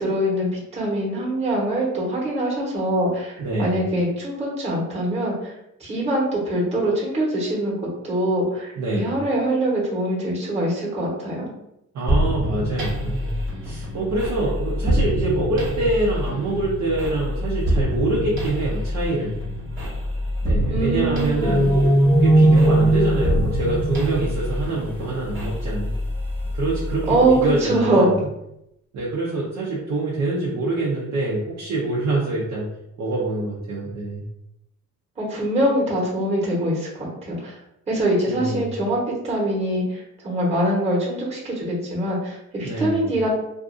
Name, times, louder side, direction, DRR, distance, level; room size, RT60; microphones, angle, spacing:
voice 1, 0.0-3.3 3.6-5.5 5.8-11.5 20.7-21.7 27.1-28.1 35.2-37.5 37.9-39.0 39.2-43.3, right 1 dB, 20° right, -4 dB, 1.0 m, -23 dB
voice 2, 3.4-3.8 8.8-9.1 11.9-19.3 20.4-25.9 26.5-28.3 28.9-32.7 33.0-34.2 38.3-38.7 42.6-43.1, right 2 dB, 60° right, -6 dB, 0.7 m, -25 dB
sound 1, 12.1-27.7, equal, 40° right, 1.0 m, -26 dB
sound 2, 21.4-24.9, right 1 dB, 5° left, 0.3 m, -18 dB
2.5 x 2.4 x 2.5 m, 0.83 s
cardioid pair, 95°, 31 cm